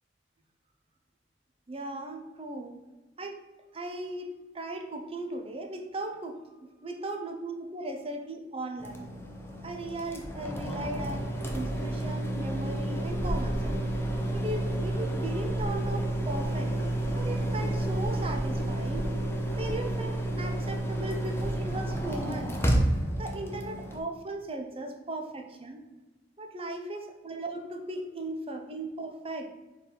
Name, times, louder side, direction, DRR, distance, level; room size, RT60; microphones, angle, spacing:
voice 1, 1.7-2.7 3.2-3.4 3.7-9.0 9.6-13.8 14.3-16.7 17.2-19.1 19.6-22.6 23.2-25.8 26.4-29.5, right 2 dB, 35° right, 4 dB, 0.8 m, -37 dB
sound 1, 8.8-24.0, right 1 dB, 15° left, 0.9 m, -30 dB
4.9 x 4.1 x 5.2 m, 1.1 s
head